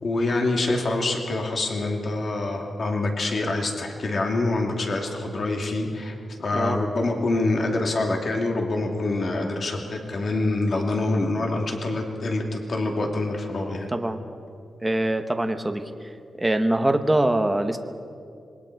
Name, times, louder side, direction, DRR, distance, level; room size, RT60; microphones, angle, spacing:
voice 1, 0.0-13.9, left 2 dB, 45° left, 2 dB, 2.5 m, -26 dB
voice 2, 13.9-14.2 14.8-15.8 16.4-17.8, right 1 dB, 10° right, 6 dB, 1.0 m, -23 dB
26.5 x 21.5 x 4.7 m, 2.5 s
wide cardioid pair, 140°, 0 cm